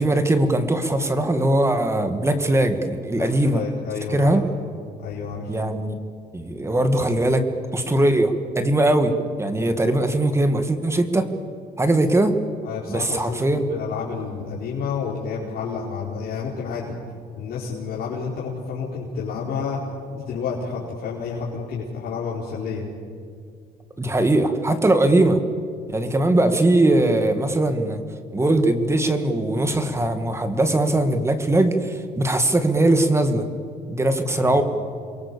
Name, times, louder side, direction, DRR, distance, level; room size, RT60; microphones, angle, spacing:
voice 1, 0.0-3.7 4.1-4.4 5.5-5.9 6.3-7.5 7.7-9.1 9.4-11.3 11.8-12.3 12.9-13.7 24.0-25.4 25.9-28.0 28.3-33.5 33.9-34.6, right 1 dB, 15° right, 8 dB, 2.2 m, -20 dB
voice 2, 3.1-4.4 5.0-5.5 9.9-10.1 12.6-16.9 17.4-19.8 20.1-22.9 34.3-34.6, left 5 dB, 65° left, -5 dB, 4.7 m, -30 dB
28.5 x 23.0 x 7.1 m, 2.2 s
cardioid pair, 110°, 17 cm